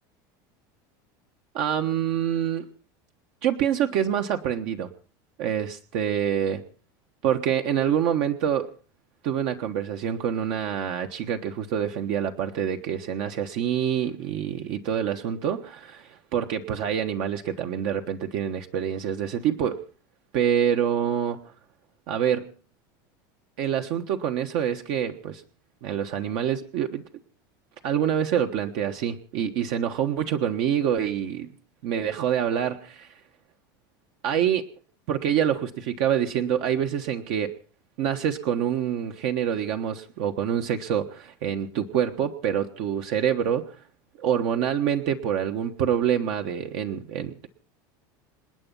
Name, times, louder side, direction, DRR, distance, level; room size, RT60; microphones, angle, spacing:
voice 1, 1.5-2.6 3.4-4.9 5.4-6.6 7.2-8.7 9.2-19.8 20.3-21.5 22.1-22.5 23.6-25.4 25.8-27.0 27.8-31.5 31.8-33.1 34.2-34.6 35.1-37.5 38.0-43.8 44.2-47.5, right 9 dB, 55° right, 6 dB, 1.3 m, -26 dB
27.5 x 9.2 x 5.5 m, 0.41 s
supercardioid pair, 165°, 11 cm